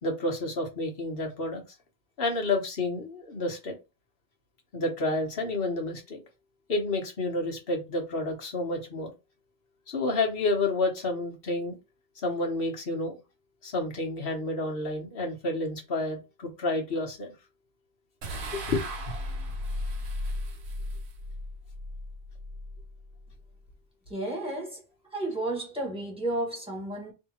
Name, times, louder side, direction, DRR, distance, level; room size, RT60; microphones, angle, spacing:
voice 1, 0.0-1.6 2.2-3.8 4.7-6.2 6.7-9.1 9.9-11.8 12.2-13.2 13.6-17.3 18.5-18.9, left 2 dB, 60° left, 1.4 m, -30 dB
sound 1, 18.2-23.6, left 1 dB, 80° right, 1.1 m, -36 dB
voice 2, 24.1-24.8 25.1-27.1, right 1 dB, 5° right, 1.6 m, -32 dB
3.4 x 2.8 x 4.3 m
omnidirectional pair, 1.1 m